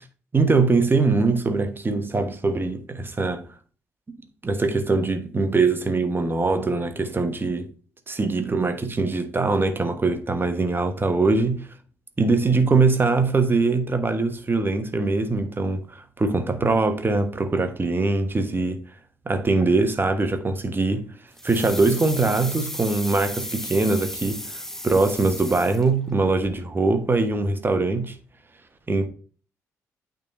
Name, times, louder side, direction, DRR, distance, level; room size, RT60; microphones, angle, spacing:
voice 1, 0.3-3.4 4.4-7.7 8.1-11.7 12.2-18.8 19.2-21.1 21.4-28.2 28.9-29.1, right 3 dB, 25° right, 1.3 m, -22 dB
sound 1, 21.4-26.2 26.4-26.5, left 1 dB, 5° left, 0.9 m, -34 dB
8.8 x 3.9 x 4.0 m
figure-of-eight pair, 40°, 8 cm